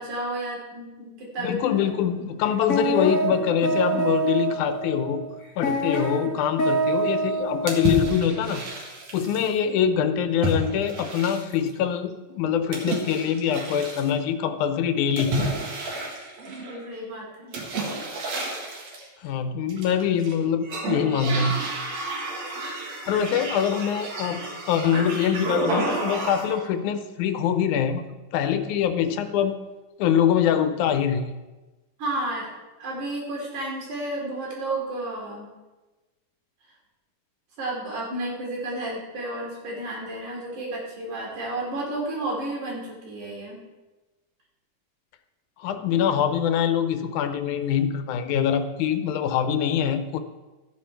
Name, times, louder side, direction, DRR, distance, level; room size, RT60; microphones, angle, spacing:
voice 1, 0.0-1.6 16.4-17.5 32.0-32.5 32.8-35.5 37.6-43.6, right 2 dB, 80° right, -3 dB, 4.5 m, -32 dB
voice 2, 1.4-5.2 5.6-8.6 9.1-15.3 19.2-21.6 23.1-28.1 28.3-29.5 30.0-31.2 45.6-50.2, left 8 dB, 80° left, 9 dB, 2.2 m, -24 dB
sound 1, 1.7-2.1 2.5-8.2, right 2 dB, 45° left, 1.1 m, -27 dB
sound 2, 7.7-9.5 10.4-11.7 12.7-14.1 15.2-16.9 17.5-19.1 19.7-20.3 20.6-26.6, right 2 dB, 60° right, 2.8 m, -31 dB
14.0 x 9.2 x 4.5 m, 1.2 s
omnidirectional pair, 3.4 m